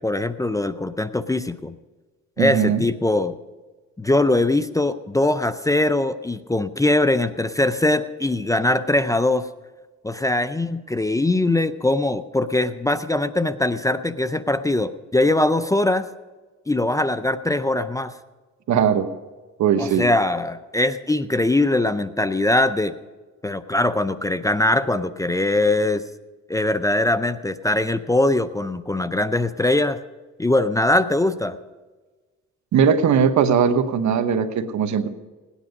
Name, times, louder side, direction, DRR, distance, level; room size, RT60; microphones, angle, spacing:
voice 1, 0.0-1.7 2.4-3.4 4.0-9.5 10.0-16.1 16.7-18.1 19.8-22.9 23.4-26.0 26.5-30.0 30.4-31.6, left 2 dB, 10° left, 12 dB, 0.5 m, -21 dB
voice 2, 2.4-2.8 18.7-19.1 19.6-20.1 32.7-35.1, right 7 dB, 70° right, 9 dB, 1.2 m, -19 dB
17.5 x 10.0 x 5.3 m, 1.3 s
cardioid pair, 90°, 30 cm